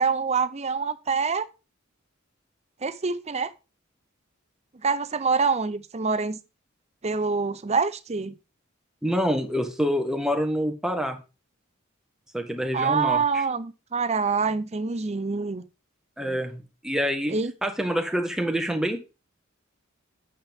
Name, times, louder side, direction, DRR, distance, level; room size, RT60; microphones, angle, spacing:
voice 1, 0.0-1.5 2.8-3.5 4.8-6.4 7.0-8.4 12.7-15.6 17.3-17.5, right 5 dB, 30° right, 0.6 m, -25 dB
voice 2, 9.0-11.2 12.3-13.4 16.2-17.3 17.6-19.0, equal, 5° right, 1.3 m, -26 dB
8.6 x 7.2 x 3.6 m
head